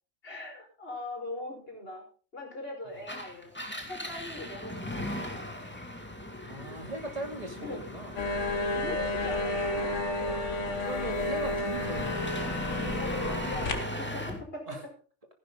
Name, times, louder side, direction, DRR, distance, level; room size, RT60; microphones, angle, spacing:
voice 1, 0.2-2.1 2.3-3.5 3.9-5.4 7.6-7.8 8.7-10.0 13.0-14.8, left 2 dB, 50° left, 1 dB, 5.3 m, -40 dB
Engine, 3.0-14.4, left 1 dB, 10° left, 2.3 m, -38 dB
voice 2, 6.4-8.2 10.8-12.2 14.7-14.8, right 2 dB, 30° right, 4 dB, 2.6 m, -38 dB
sound 1, 8.2-13.7, left 2 dB, 80° left, 1.8 m, -31 dB
15.0 x 11.0 x 3.8 m, 0.36 s
omnidirectional pair, 1.2 m